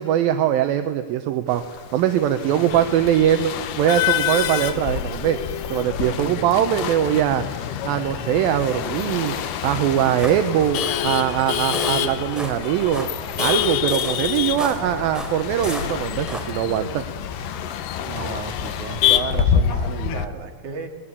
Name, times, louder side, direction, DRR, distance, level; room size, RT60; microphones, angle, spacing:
voice 1, 0.0-1.6 1.9-7.4 7.8-13.1 13.4-17.0, right 10 dB, 75° right, 8 dB, 2.7 m, -22 dB
sound 1, 1.5-19.1, left 9 dB, 70° left, 1.6 m, -36 dB
voice 2, 2.6-2.9 6.1-6.4 18.0-20.9, right 5 dB, 55° right, 4 dB, 3.8 m, -33 dB
Male speech man speaking / Laughter / Chatter, 2.7-20.3, left 9 dB, 85° left, 3.0 m, -27 dB
sound 2, 10.1-16.7, equal, ahead, 3.7 m, -34 dB
27.5 x 20.5 x 8.5 m, 1.4 s
omnidirectional pair, 4.3 m